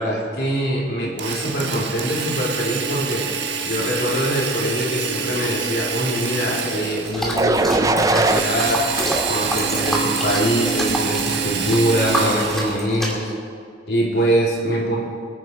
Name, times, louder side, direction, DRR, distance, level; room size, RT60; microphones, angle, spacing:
voice 1, 0.0-3.3 3.6-8.9 9.3-13.3 13.9-15.0, equal, 65° left, -4 dB, 3.4 m, -23 dB
Drill, 1.2-7.3 8.2-12.9, right 6 dB, 75° right, 1.3 m, -27 dB
sound 1, 7.0-13.1, equal, ahead, 2.2 m, -28 dB
sound 2, 7.4-8.4 9.0-10.0 10.6-11.0, right 2 dB, 20° right, 0.5 m, -21 dB
24.5 x 9.3 x 4.7 m, 2.3 s
head